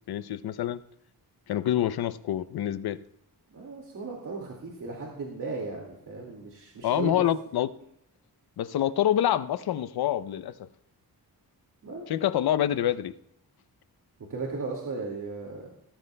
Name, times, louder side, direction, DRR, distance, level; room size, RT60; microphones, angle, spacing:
voice 1, 0.1-0.8 1.5-3.0 6.8-7.7 8.6-10.7 12.1-13.1, left 11 dB, 75° left, 14 dB, 0.6 m, -26 dB
voice 2, 3.5-7.2 11.8-12.1 14.3-15.7, right 3 dB, 55° right, -1 dB, 2.0 m, -36 dB
18.5 x 13.5 x 2.2 m, 0.76 s
wide cardioid pair, 165°, 38 cm